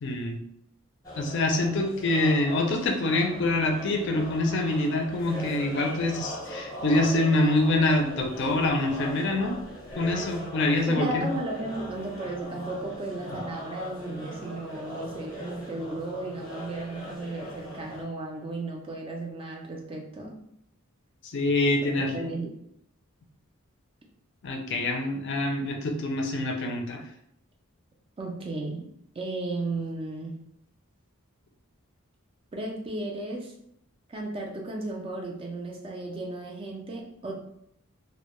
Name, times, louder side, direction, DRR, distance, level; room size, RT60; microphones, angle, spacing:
voice 1, 0.0-0.4 1.2-9.5 10.0-11.3 21.3-22.2 24.4-27.0, left 2 dB, 50° left, 2 dB, 0.4 m, -25 dB
sound 1, 1.0-18.0, equal, 15° left, 0.7 m, -40 dB
voice 2, 10.9-20.4 21.9-22.5 28.2-28.9 29.2-30.4 32.5-33.5 34.1-37.4, right 2 dB, 25° right, 0 dB, 0.3 m, -34 dB
2.1 x 2.1 x 2.9 m, 0.73 s
head